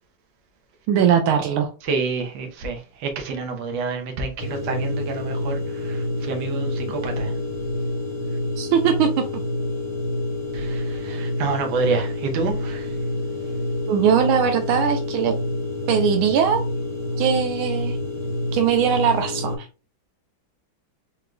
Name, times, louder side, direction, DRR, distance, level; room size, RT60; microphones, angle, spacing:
voice 1, 0.9-1.7 8.6-9.1 13.9-15.3 15.9-16.6 17.2-18.0 18.5-19.7, right 8 dB, 85° right, 1.4 m, -20 dB
voice 2, 1.8-7.4 10.5-13.0, right 4 dB, 70° right, 1.5 m, -28 dB
sound 1, 4.4-19.6, left 1 dB, 10° right, 0.8 m, -27 dB
4.8 x 3.7 x 2.2 m
omnidirectional pair, 2.2 m